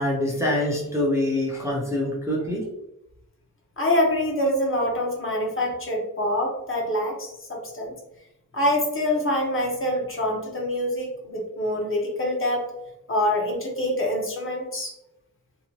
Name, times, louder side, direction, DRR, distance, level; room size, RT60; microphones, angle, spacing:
voice 1, 0.0-2.6, left 1 dB, 10° right, -4 dB, 0.5 m, -25 dB
voice 2, 3.8-7.9 8.5-12.7 13.1-14.9, left 1 dB, 35° left, -1 dB, 0.7 m, -25 dB
2.6 x 2.1 x 2.9 m, 0.86 s
wide cardioid pair, 145°, 35 cm